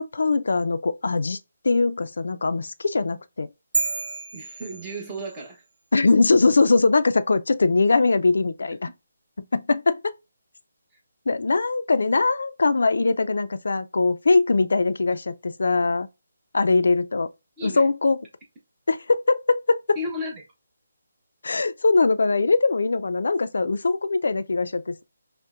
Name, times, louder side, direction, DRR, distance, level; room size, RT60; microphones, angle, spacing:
voice 1, 0.0-1.4 1.6-3.5 5.9-8.8 9.5-10.1 11.3-16.1 16.5-17.3 17.6-18.2 18.9-19.8 21.4-25.0, left 3 dB, 75° left, 0.4 m, -21 dB
sound 1, 3.7-5.5, right 3 dB, 75° right, 0.5 m, -30 dB
voice 2, 4.3-5.6 17.6-17.9 19.9-20.4, left 1 dB, 20° right, 0.9 m, -33 dB
5.3 x 2.1 x 2.4 m
figure-of-eight pair, 160°, 0 cm